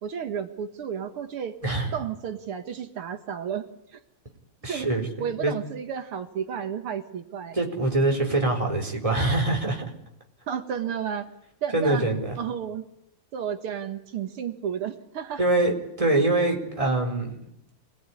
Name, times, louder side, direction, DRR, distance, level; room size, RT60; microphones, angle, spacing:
voice 1, 0.0-1.6 1.9-4.0 4.7-4.9 5.2-7.6 10.5-11.3 11.6-12.0 12.4-12.8 13.3-15.4, right 8 dB, 80° right, 7 dB, 2.4 m, -32 dB
voice 2, 1.6-1.9 4.6-5.5 7.5-9.9 11.7-12.4 15.4-17.3, right 2 dB, 15° right, 1 dB, 4.4 m, -24 dB
27.5 x 19.0 x 9.9 m, 0.78 s
omnidirectional pair, 2.4 m